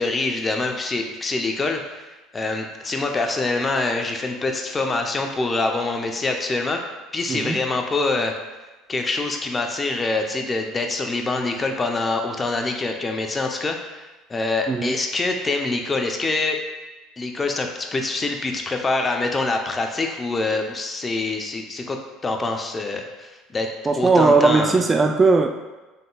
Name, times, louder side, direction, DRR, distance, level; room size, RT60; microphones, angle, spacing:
voice 1, 0.0-6.8 7.1-8.3 8.9-16.6 17.2-23.7 24.0-24.8, left 3 dB, 25° left, 4 dB, 0.6 m, -25 dB
voice 2, 7.3-7.6 14.7-15.0 23.9-25.5, right 3 dB, 25° right, 5 dB, 0.3 m, -18 dB
5.3 x 3.8 x 2.3 m, 1.1 s
hypercardioid pair, 65°, 0 cm